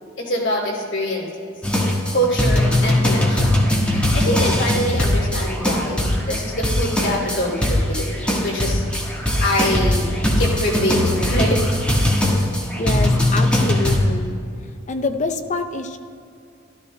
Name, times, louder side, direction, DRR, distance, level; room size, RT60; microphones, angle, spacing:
voice 1, 0.2-1.5 2.1-3.5 3.8-11.6, equal, 65° left, -3 dB, 2.7 m, -25 dB
sound 1, 1.6-14.0, left 1 dB, 5° left, 1.3 m, -20 dB
voice 2, 12.8-14.4 14.9-16.0, left 3 dB, 40° left, 7 dB, 0.5 m, -26 dB
13.5 x 13.0 x 2.2 m, 2.5 s
head